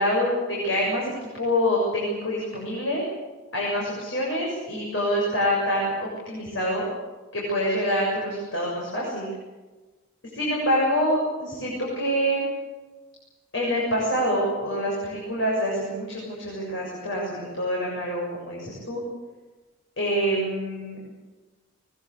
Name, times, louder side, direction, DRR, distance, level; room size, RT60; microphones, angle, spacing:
voice 1, 0.0-3.0 3.5-6.9 7.3-9.3 10.3-12.5 13.5-19.0 20.0-21.0, equal, 65° left, -4 dB, 7.1 m, -26 dB
22.0 x 20.5 x 8.3 m, 1.2 s
head